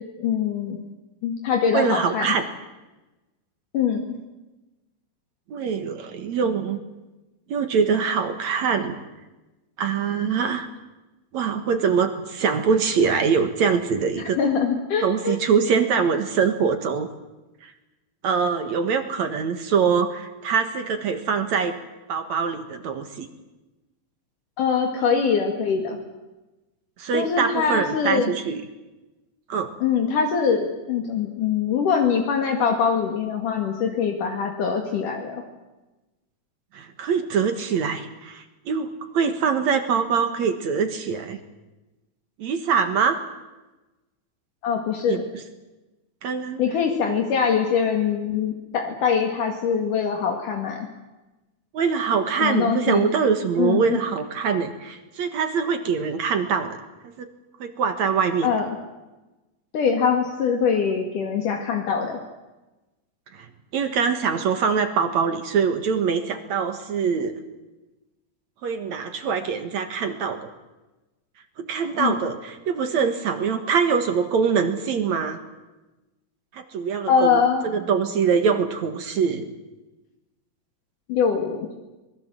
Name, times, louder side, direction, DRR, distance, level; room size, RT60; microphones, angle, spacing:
voice 1, 0.2-0.8 1.2-2.4 3.7-4.1 14.4-15.4 24.6-26.0 27.1-28.3 29.8-35.4 44.6-45.2 46.6-50.9 52.4-53.1 53.6-54.0 58.4-58.7 59.7-62.2 71.9-72.1 77.1-77.6 81.1-81.7, left 6 dB, 65° left, 3 dB, 3.5 m, -23 dB
voice 2, 1.7-2.4 5.5-6.8 7.5-9.0 9.8-10.7 11.3-14.4 15.0-17.1 17.6-17.7 18.2-21.7 22.1-23.3 27.0-28.6 29.5-29.7 36.7-41.4 42.4-43.2 45.1-45.2 46.2-46.6 47.1-47.2 51.7-56.8 57.0-57.3 57.6-58.5 63.3-63.5 63.7-67.4 68.6-70.5 71.6-75.4 76.5-77.4 77.7-79.5, right 6 dB, 60° right, 8 dB, 2.6 m, -23 dB
25.5 x 20.5 x 7.6 m, 1.1 s
omnidirectional pair, 4.0 m